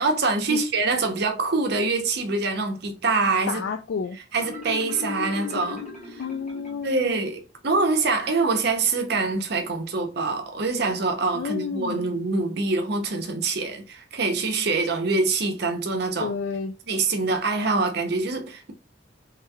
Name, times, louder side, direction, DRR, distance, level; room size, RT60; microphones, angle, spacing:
voice 1, 0.0-3.6 4.3-5.9 6.1-6.2 6.8-16.3 16.9-18.7, right 3 dB, 60° right, 0.8 m, -25 dB
voice 2, 3.5-4.2 6.2-7.2 11.3-12.0 16.2-16.7, left 5 dB, 70° left, 0.3 m, -30 dB
Marimba xylophone, 4.4-7.1, left 5 dB, 40° left, 1.1 m, -37 dB
3.3 x 3.1 x 2.3 m
head